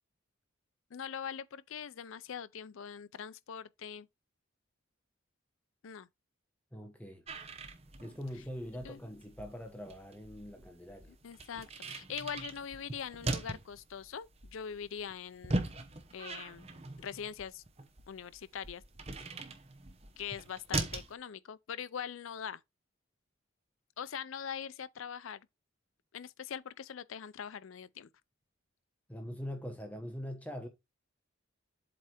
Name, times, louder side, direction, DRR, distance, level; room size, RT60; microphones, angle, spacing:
voice 1, 0.9-4.1 5.8-6.1 8.8-9.0 11.2-15.7 16.1-16.7 17.0-17.6 18.1-18.8 20.2-22.6 24.0-25.4 26.1-28.1, left 7 dB, 70° left, 0.4 m, -42 dB
voice 2, 6.7-7.2 8.0-11.2 29.1-30.7, equal, 5° left, 0.9 m, -43 dB
sound 1, 7.3-21.1, right 2 dB, 30° right, 0.9 m, -41 dB
7.8 x 3.4 x 4.3 m
head